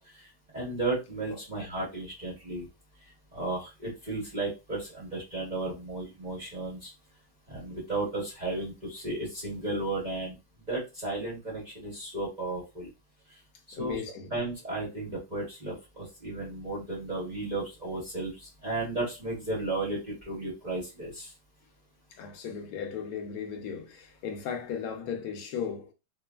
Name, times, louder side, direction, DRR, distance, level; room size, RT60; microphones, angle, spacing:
voice 1, 0.5-2.7 3.3-6.9 7.5-10.4 10.7-12.9 13.8-14.0 14.3-21.3, right 2 dB, 40° right, 0.6 m, -34 dB
voice 2, 13.7-14.3 22.1-25.9, left 7 dB, 70° left, 0.9 m, -36 dB
3.2 x 2.0 x 2.2 m
omnidirectional pair, 2.2 m